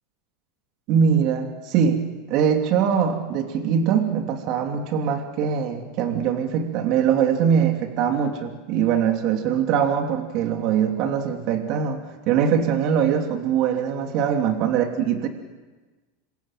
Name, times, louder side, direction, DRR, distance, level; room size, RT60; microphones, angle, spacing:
voice 1, 0.9-2.0 2.3-15.3, right 7 dB, 55° right, 4 dB, 2.9 m, -22 dB
27.5 x 24.0 x 7.5 m, 1.2 s
supercardioid pair, 115°, 0 cm